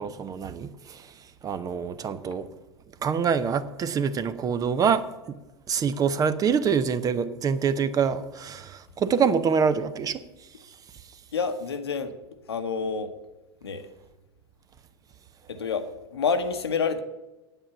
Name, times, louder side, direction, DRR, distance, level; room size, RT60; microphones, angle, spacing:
voice 1, 0.0-2.5 3.0-5.4 5.7-10.2 10.6-11.2, right 6 dB, 25° right, 0.7 m, -26 dB
voice 2, 11.3-12.1 12.5-13.1 13.6-13.9 15.5-17.0, left 5 dB, 75° left, 1.1 m, -28 dB
9.0 x 8.7 x 6.9 m
figure-of-eight pair, 85°, 13 cm